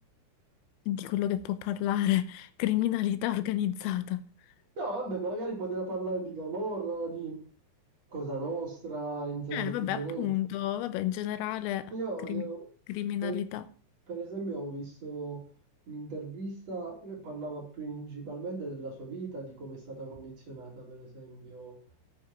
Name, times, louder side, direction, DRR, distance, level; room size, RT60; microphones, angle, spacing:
voice 1, 0.9-4.3 9.5-11.9 12.3-12.4 12.9-13.6, left 13 dB, 85° left, 3.4 m, -30 dB
voice 2, 4.8-7.4 8.1-10.3 11.9-12.6 13.2-13.4 14.1-15.4 15.9-21.8, right 3 dB, 35° right, 3.9 m, -36 dB
10.5 x 9.0 x 5.9 m
omnidirectional pair, 6.0 m